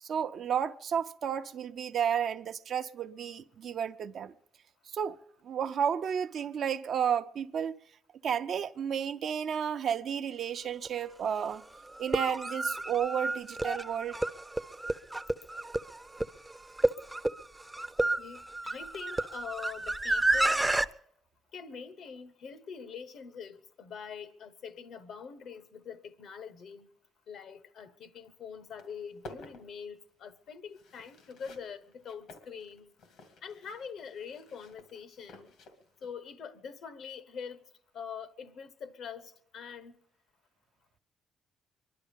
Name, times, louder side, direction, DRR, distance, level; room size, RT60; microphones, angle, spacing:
voice 1, 0.0-4.3 4.9-7.8 8.2-11.6 12.0-14.2, right 8 dB, 60° right, 0.6 m, -32 dB
sound 1, 10.8-10.9 12.0-20.9, right 2 dB, 10° right, 0.5 m, -30 dB
voice 2, 18.2-20.7 21.5-26.9 27.3-32.9 33.4-35.5 36.0-37.6 37.9-39.9, left 6 dB, 70° left, 0.9 m, -44 dB
sound 2, 28.2-28.3 28.6-36.1, left 2 dB, 85° left, 2.2 m, -53 dB
24.5 x 11.0 x 5.2 m
cardioid pair, 90°, 0 cm